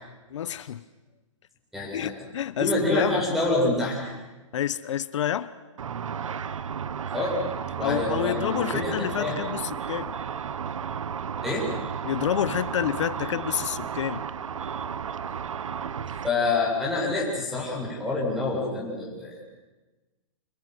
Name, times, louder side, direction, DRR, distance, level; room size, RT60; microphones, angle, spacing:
voice 1, 0.3-0.8 1.9-3.2 4.5-5.5 7.8-10.1 12.0-14.2, left 10 dB, 70° left, 1.0 m, -28 dB
voice 2, 1.7-2.1 2.6-4.1 7.1-7.4 7.8-9.4 11.4-11.7 16.2-19.4, left 2 dB, ahead, 7.7 m, -27 dB
Car / Traffic noise roadway noise / Engine, 5.8-16.3, right 7 dB, 90° right, 1.1 m, -33 dB
28.0 x 26.5 x 6.3 m
hypercardioid pair, 145°, 16 cm